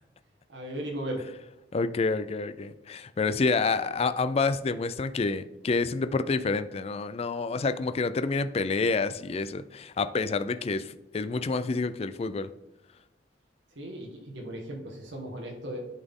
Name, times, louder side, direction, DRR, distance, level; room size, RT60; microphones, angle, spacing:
voice 1, 0.5-1.2 13.7-15.9, right 1 dB, 80° right, 0 dB, 1.5 m, -36 dB
voice 2, 1.7-12.5, left 4 dB, 35° left, 12 dB, 0.4 m, -28 dB
11.0 x 4.1 x 3.6 m, 0.94 s
head